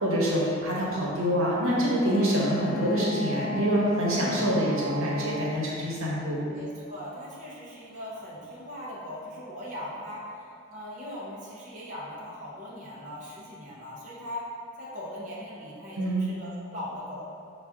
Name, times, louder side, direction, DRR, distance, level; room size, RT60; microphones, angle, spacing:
voice 1, 0.0-6.4 16.0-16.2, equal, 85° right, -5 dB, 1.0 m, -26 dB
Wind instrument woodwind instrument, 2.0-5.7, left 2 dB, 20° left, 0.3 m, -34 dB
voice 2, 4.4-5.1 6.5-10.2 10.7-14.5 14.8-17.4, left 1 dB, 35° right, -7 dB, 0.7 m, -40 dB
5.8 x 2.4 x 3.5 m, 2.4 s
head